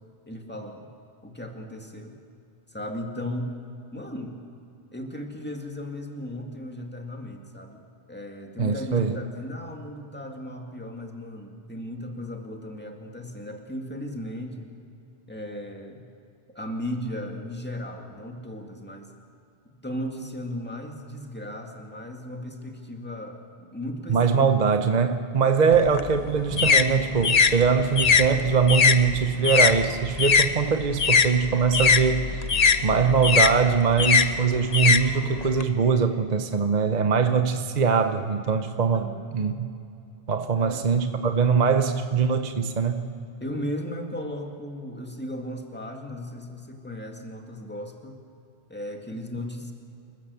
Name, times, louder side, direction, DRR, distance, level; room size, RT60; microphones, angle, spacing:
voice 1, 0.3-0.9 1.2-2.2 2.7-3.6 3.9-4.4 4.9-7.8 8.1-14.7 15.3-16.1 16.5-19.1 19.8-24.5 25.7-25.8 26.2-26.3 38.9-39.2 39.7-39.8 40.6-40.8 43.4-48.2 48.7-49.7, left 1 dB, 10° left, 2 dB, 2.0 m, -36 dB
voice 2, 8.6-9.2 24.1-32.5 32.8-39.7 40.3-43.1, right 6 dB, 45° right, 8 dB, 0.9 m, -22 dB
sound 1, 25.7-30.5 30.8-35.6, left 5 dB, 40° left, 0.7 m, -21 dB
27.0 x 15.0 x 7.0 m, 2.6 s
omnidirectional pair, 1.1 m